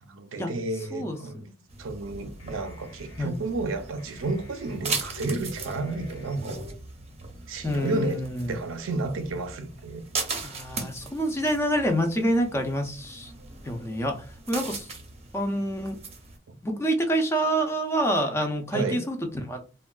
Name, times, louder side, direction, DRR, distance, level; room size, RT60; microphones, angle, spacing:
voice 1, 0.0-1.5 1.8-6.6 7.5-8.2 8.5-10.0 16.5-16.6 18.7-19.0, right 2 dB, 85° right, 0.5 m, -31 dB
voice 2, 0.9-1.6 3.2-3.4 7.6-8.6 10.4-13.3 13.6-14.9 15.3-16.0 16.6-19.6, right 1 dB, 15° left, 0.4 m, -27 dB
sound 1, 1.7-16.4, right 4 dB, 30° right, 0.6 m, -39 dB
sound 2, 1.8-6.7, equal, 80° left, 0.8 m, -47 dB
3.4 x 2.2 x 2.3 m
head